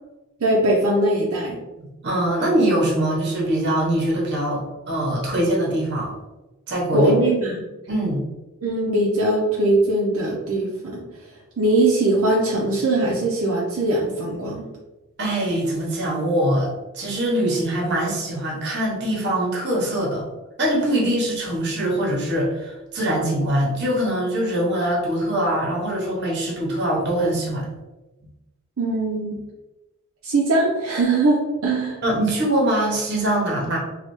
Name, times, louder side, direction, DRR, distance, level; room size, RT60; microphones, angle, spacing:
voice 1, 0.4-1.6 6.9-7.6 8.6-11.0 11.6-14.7 28.8-29.4 30.2-32.0, right 2 dB, 75° right, -4 dB, 0.6 m, -21 dB
voice 2, 1.8-6.1 6.7-7.1 7.9-8.2 15.2-20.2 20.6-27.7 32.0-33.8, right 1 dB, 55° right, -2 dB, 0.9 m, -23 dB
3.2 x 2.3 x 3.0 m, 1.1 s
head